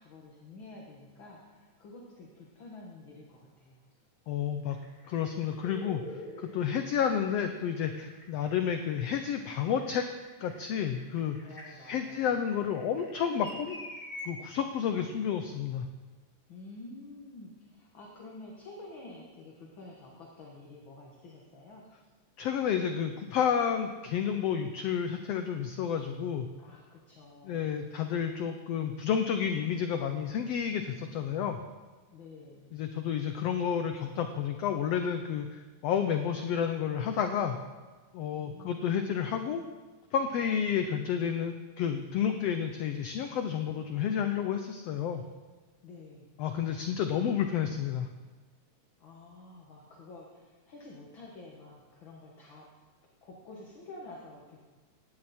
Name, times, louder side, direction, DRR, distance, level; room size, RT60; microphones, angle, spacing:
voice 1, 0.0-3.9 11.4-12.4 16.5-21.9 26.6-27.8 32.1-32.8 38.3-39.0 45.8-46.3 49.0-52.7 53.2-54.6, left 2 dB, 45° left, -2 dB, 1.8 m, -49 dB
voice 2, 4.3-4.8 5.1-10.0 10.4-11.4 11.8-13.8 14.2-15.8 22.4-26.5 27.4-31.6 32.7-37.6 38.1-39.6 40.1-45.2 46.4-48.1, left 8 dB, 90° left, 7 dB, 1.4 m, -30 dB
sound 1, 4.7-14.3 15.4-15.5, left 1 dB, 15° left, 1.9 m, -48 dB
17.5 x 10.5 x 4.3 m, 1.3 s
omnidirectional pair, 3.7 m